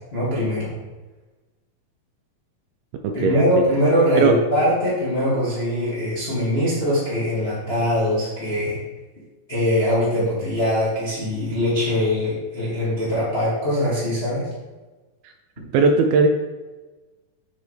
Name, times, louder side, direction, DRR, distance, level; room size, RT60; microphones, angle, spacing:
voice 1, 0.1-0.7 3.1-8.8 9.5-14.4, equal, 30° left, -9 dB, 1.1 m, -22 dB
voice 2, 3.0-3.4 4.1-4.3 15.7-16.3, right 4 dB, 80° right, 5 dB, 2.2 m, -17 dB
7.0 x 6.7 x 3.2 m, 1.2 s
omnidirectional pair, 4.5 m